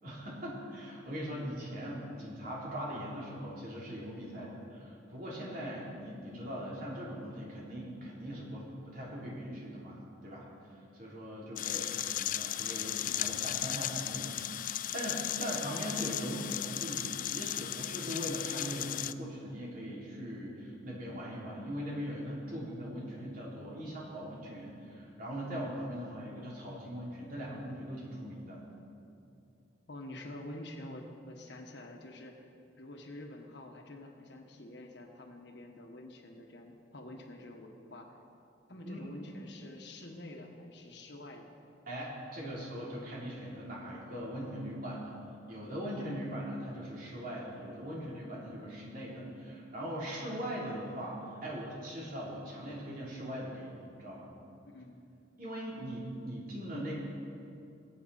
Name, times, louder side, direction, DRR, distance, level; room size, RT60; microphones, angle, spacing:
voice 1, 0.0-28.6 38.8-39.1 41.9-45.2 45.5-54.3 55.4-56.9, equal, 55° right, -5 dB, 3.5 m, -40 dB
sound 1, 11.6-19.1, left 13 dB, 45° left, 0.3 m, -36 dB
voice 2, 11.7-12.1 26.0-26.2 29.9-32.5 32.8-38.1 38.7-41.6 45.9-46.2 54.6-55.0, left 1 dB, 65° left, 2 dB, 1.5 m, -48 dB
21.0 x 8.6 x 4.2 m, 2.6 s
head